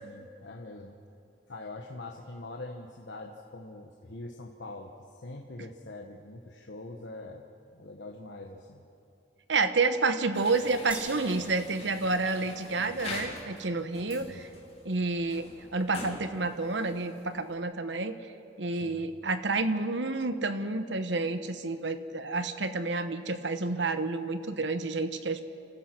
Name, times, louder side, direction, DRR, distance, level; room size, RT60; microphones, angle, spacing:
voice 1, 0.0-1.0 1.5-8.8 14.2-14.4 18.7-19.0, left 2 dB, 80° left, 1 dB, 1.2 m, -44 dB
voice 2, 9.5-14.5 14.8-15.4 15.7-18.1 18.6-25.4, right 3 dB, 85° right, 10 dB, 1.1 m, -29 dB
sound 1, 10.3-17.5, left 2 dB, 35° left, 3.6 m, -44 dB
sound 2, 10.9-13.5, right 1 dB, 10° right, 1.8 m, -47 dB
29.0 x 15.0 x 6.1 m, 2.6 s
head